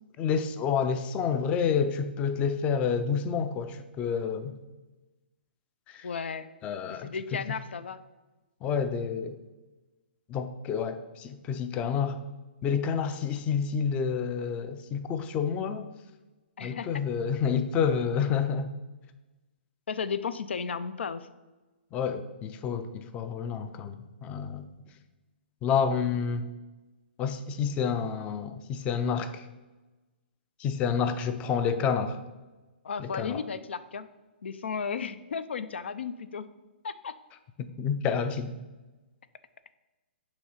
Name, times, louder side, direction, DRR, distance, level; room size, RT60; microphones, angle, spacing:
voice 1, 0.2-4.6 5.9-6.1 6.6-7.2 8.6-9.4 10.3-12.2 12.6-15.8 16.6-18.7 21.9-24.7 25.6-26.5 27.2-29.4 30.6-32.2 33.0-33.4 37.6-38.5, left 6 dB, 20° left, 10 dB, 0.4 m, -29 dB
voice 2, 6.0-6.5 6.9-8.0 16.6-16.9 19.9-21.3 32.8-34.1 34.4-36.5 36.8-37.1, left 6 dB, 80° left, 14 dB, 0.4 m, -34 dB
6.0 x 3.7 x 5.6 m, 1.1 s
hypercardioid pair, 150°, 6 cm